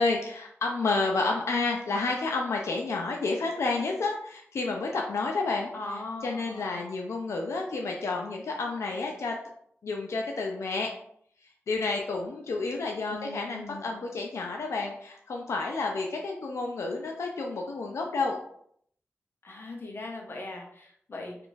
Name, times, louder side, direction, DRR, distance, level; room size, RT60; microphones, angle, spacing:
voice 1, 0.0-9.4 9.8-10.9 11.7-18.4, left 3 dB, 90° left, 1 dB, 0.4 m, -30 dB
voice 2, 5.7-6.7 13.1-14.0 19.4-21.4, left 2 dB, 55° left, 1 dB, 0.7 m, -40 dB
3.6 x 2.4 x 2.5 m, 0.67 s
wide cardioid pair, 105°, 5 cm